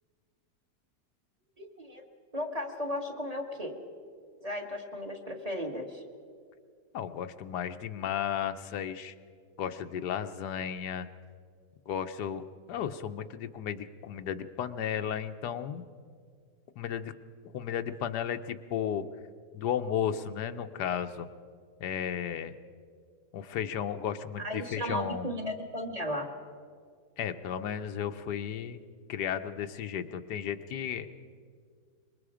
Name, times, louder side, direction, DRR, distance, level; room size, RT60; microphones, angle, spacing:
voice 1, 1.6-2.0 2.3-3.8 4.4-6.0 24.4-26.3, equal, 25° right, 3 dB, 1.8 m, -35 dB
voice 2, 6.9-9.1 9.6-11.1 11.9-15.8 16.8-17.1 17.5-19.0 19.5-21.3 21.8-22.5 23.3-25.3 27.2-28.8 29.1-31.1, left 9 dB, 90° left, 9 dB, 1.4 m, -34 dB
25.5 x 22.5 x 5.0 m, 2.1 s
omnidirectional pair, 1.7 m